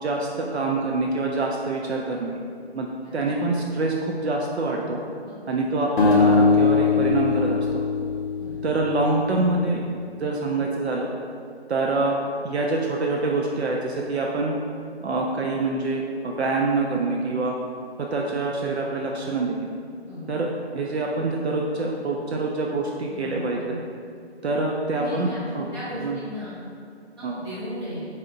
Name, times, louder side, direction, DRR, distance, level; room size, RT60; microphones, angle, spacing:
voice 1, 0.0-2.4 2.7-2.9 3.1-5.0 5.5-7.6 8.6-9.8 10.2-11.1 11.7-12.2 12.4-14.5 15.0-17.5 18.1-19.7 20.3-20.5 20.7-23.7 24.4-25.3 25.5-25.6 26.0-26.2 27.2-27.4, right 3 dB, 70° right, -1 dB, 0.5 m, -25 dB
voice 2, 5.3-5.6 8.4-8.6 20.1-20.3 23.1-23.9 24.9-26.6 27.2-28.1, equal, 20° right, -11 dB, 1.2 m, -36 dB
sound 1, 6.0-9.1, left 4 dB, 50° left, 0.7 m, -21 dB
4.1 x 2.4 x 3.8 m, 2.3 s
figure-of-eight pair, 160°, 33 cm